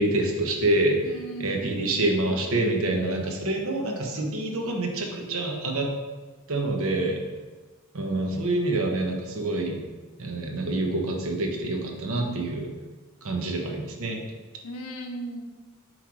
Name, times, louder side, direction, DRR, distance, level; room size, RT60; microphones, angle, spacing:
voice 1, 0.0-1.0 1.4-5.9 6.5-7.2 7.9-9.8 10.2-12.7 13.2-14.2, right 2 dB, 70° right, 2 dB, 1.0 m, -26 dB
voice 2, 1.0-1.9 14.6-15.4, right 1 dB, 90° left, 5 dB, 0.8 m, -37 dB
7.7 x 3.2 x 4.7 m, 1.3 s
head